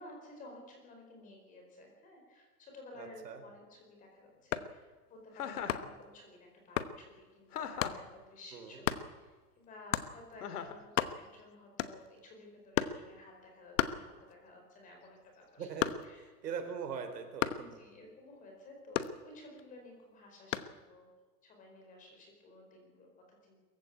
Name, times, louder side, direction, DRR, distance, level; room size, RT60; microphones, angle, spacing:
voice 1, 0.0-15.7 16.0-16.3 17.5-21.1 21.4-23.6, left 2 dB, 15° left, 2 dB, 4.7 m, -54 dB
voice 2, 3.0-3.4 8.5-8.8 15.6-15.9 16.2-17.5, right 6 dB, 90° right, 6 dB, 4.4 m, -41 dB
sound 1, 4.4-4.8 5.7-6.0 6.8-7.0 7.8-8.0 8.8-9.1 9.9-10.2 10.6-10.7 10.8-11.4 11.8-12.2 12.7-13.1 13.8-14.5 14.9-16.3 17.4-17.7 18.9-19.6 20.5-20.8, left 11 dB, 50° left, 1.1 m, -34 dB
Chuckle chortle, 5.4-5.9 7.5-8.1 10.4-10.8, left 8 dB, 70° left, 2.4 m, -39 dB
22.5 x 15.0 x 8.4 m, 1.3 s
supercardioid pair, 170°, 47 cm